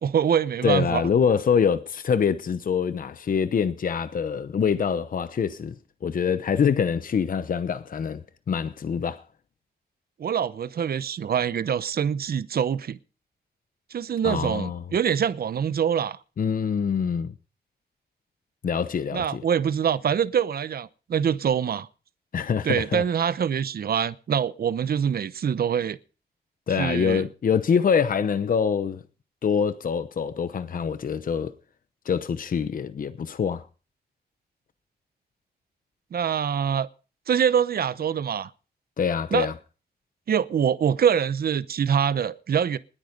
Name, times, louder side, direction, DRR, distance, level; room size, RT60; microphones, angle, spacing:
voice 1, 0.0-1.1 10.2-13.0 13.9-16.2 19.1-21.9 22.6-26.0 26.8-27.2 36.1-36.9 37.3-38.5 39.3-39.5 40.3-42.8, right 8 dB, 65° right, 0.8 m, -24 dB
voice 2, 0.6-5.7 6.0-8.2 8.5-9.2 14.2-14.8 16.4-17.3 18.6-19.4 22.3-23.0 26.7-29.0 29.4-31.5 32.1-33.6 39.0-39.5, left 6 dB, 55° left, 0.9 m, -25 dB
20.0 x 9.1 x 5.2 m
wide cardioid pair, 155°, 17 cm